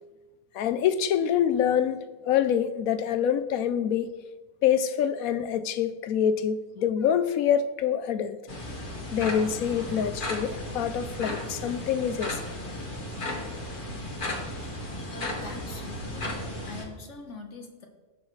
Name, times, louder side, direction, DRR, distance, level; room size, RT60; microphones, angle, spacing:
voice 1, 0.5-2.0 2.2-4.2 4.6-8.4 9.1-12.4, left 9 dB, 70° left, 1.0 m, -26 dB
sound 1, 8.5-16.8, left 1 dB, 35° left, 1.8 m, -35 dB
voice 2, 14.7-16.3 16.6-17.9, left 3 dB, 55° left, 1.5 m, -44 dB
18.5 x 6.4 x 3.2 m
omnidirectional pair, 1.6 m